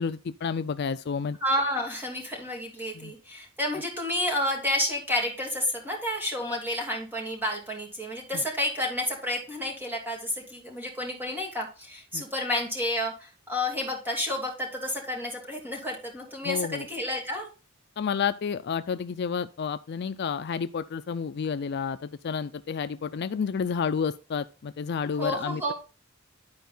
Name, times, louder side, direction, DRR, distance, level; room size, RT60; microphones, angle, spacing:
voice 1, 0.0-1.4 2.9-3.1 8.3-8.4 12.1-12.2 16.4-16.9 18.0-25.6, left 6 dB, 55° left, 0.4 m, -30 dB
voice 2, 1.4-17.5 25.2-25.7, left 1 dB, 10° right, 2.8 m, -30 dB
11.5 x 4.6 x 3.9 m
head